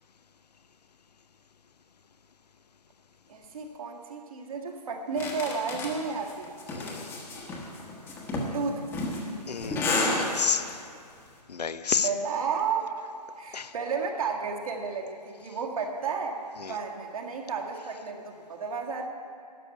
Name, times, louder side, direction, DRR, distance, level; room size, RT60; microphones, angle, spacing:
voice 1, 3.3-6.6 8.5-8.9 12.0-16.4 16.7-19.1, right 5 dB, 60° right, 1 dB, 1.9 m, -32 dB
sound 1, 5.2-10.7, left 2 dB, 10° left, 1.2 m, -31 dB
voice 2, 6.7-7.2 9.5-10.9 11.5-12.1 13.5-13.7 16.6-16.8, left 6 dB, 75° left, 12 dB, 0.7 m, -31 dB
12.0 x 6.7 x 9.3 m, 2.4 s
figure-of-eight pair, 145°, 21 cm